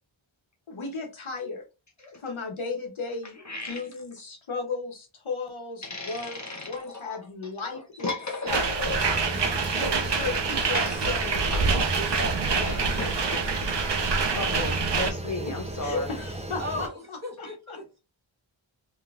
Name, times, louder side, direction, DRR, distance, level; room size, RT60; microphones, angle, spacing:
voice 1, 0.7-1.6 2.0-8.1 8.4-8.7 9.3-11.4 15.8-17.8, left 4 dB, 80° left, 1.0 m, -35 dB
voice 2, 3.4-3.8 5.8-7.2 8.0-9.4 10.7-11.0 11.5-11.7 12.0-12.1 12.4-13.5 14.3-16.1 17.4-17.5, left 3 dB, 35° left, 0.7 m, -34 dB
sound 1, 8.5-15.1, right 4 dB, 60° right, 0.7 m, -26 dB
sound 2, 8.9-16.9, right 1 dB, 15° right, 0.5 m, -36 dB
voice 3, 11.6-12.9 16.6-18.0, equal, 35° right, 1.5 m, -36 dB
3.4 x 2.9 x 2.4 m
wide cardioid pair, 70°, 48 cm